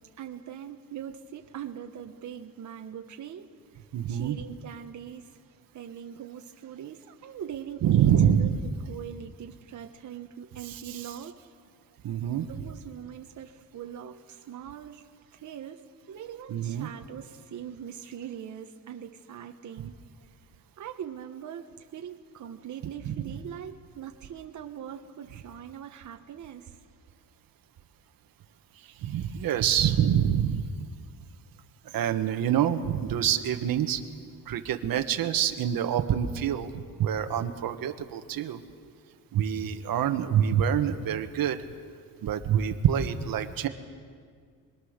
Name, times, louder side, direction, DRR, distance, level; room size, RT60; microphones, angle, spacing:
voice 1, 0.2-5.3 5.7-11.3 12.5-15.0 15.3-19.9 20.8-26.8, right 9 dB, 55° right, 4 dB, 1.1 m, -42 dB
voice 2, 3.9-4.4 7.8-8.6 10.7-11.0 12.0-12.5 16.5-16.9 23.0-23.1 29.0-30.6 31.9-34.0 34.5-36.7 37.0-38.6 39.3-41.6 42.2-43.7, right 9 dB, 75° right, 7 dB, 1.4 m, -26 dB
27.5 x 22.0 x 6.6 m, 2.1 s
cardioid pair, 140°, 35 cm